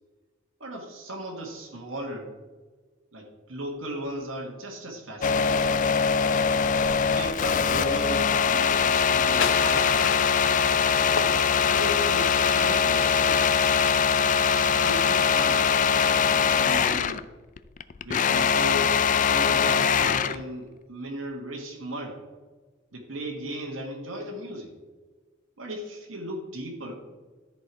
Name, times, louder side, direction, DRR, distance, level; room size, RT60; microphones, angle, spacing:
voice 1, 0.6-2.3 3.1-5.7 6.7-10.3 11.7-13.7 14.5-17.2 18.0-19.0 19.3-22.2 22.9-24.7 25.6-26.9, right 1 dB, 75° right, -1 dB, 1.6 m, -36 dB
sound 1, 5.2-17.2 17.6-20.4, left 6 dB, 40° left, 0.4 m, -22 dB
Applause, 6.8-16.9, equal, 20° right, 2.9 m, -49 dB
sound 2, 8.9-11.9, left 5 dB, 70° left, 0.8 m, -33 dB
13.0 x 4.5 x 4.7 m, 1.4 s
head